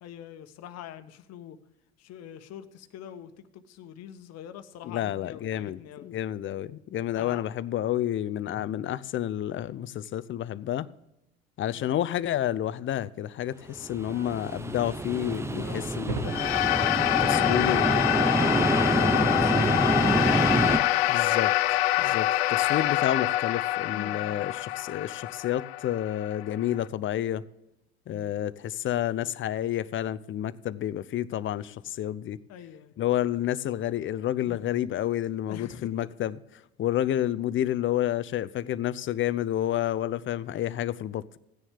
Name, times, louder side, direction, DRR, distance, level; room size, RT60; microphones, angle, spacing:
voice 1, 0.0-1.6 2.0-6.1 7.0-7.5 10.8-10.9 15.6-16.4 17.1-18.4 18.8-20.4 23.9-24.4 28.1-28.3 32.5-32.9 34.4-34.6 35.5-35.9, left 10 dB, 55° left, 1.3 m, -43 dB
voice 2, 4.8-10.9 11.6-16.3 17.2-17.9 21.1-21.5 22.0-27.4 28.1-32.4 33.0-36.4 36.8-41.4, left 12 dB, 40° left, 0.7 m, -30 dB
sound 1, 13.8-20.8, right 2 dB, 10° right, 0.8 m, -27 dB
sound 2, 14.0-22.0, right 3 dB, 85° right, 1.6 m, -45 dB
sound 3, 16.3-26.8, left 15 dB, 80° left, 0.5 m, -26 dB
16.0 x 9.9 x 3.6 m
hypercardioid pair, 65°, 31 cm